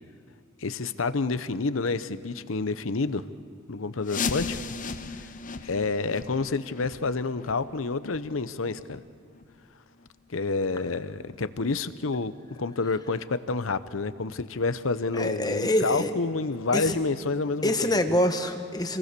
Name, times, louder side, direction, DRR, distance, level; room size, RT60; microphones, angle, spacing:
voice 1, 0.6-3.2 3.7-4.6 5.2-5.3 5.6-9.0 10.3-18.0, left 3 dB, 80° left, 13 dB, 0.8 m, -29 dB
sound 1, 4.0-9.6 10.0-10.1 10.6-10.7 11.3-11.4 12.0-12.1, left 5 dB, 40° left, 0.9 m, -36 dB
voice 2, 15.1-16.1 16.7-17.0 17.6-19.0, left 1 dB, 20° left, 6 dB, 1.3 m, -25 dB
27.5 x 19.5 x 6.8 m, 2.2 s
head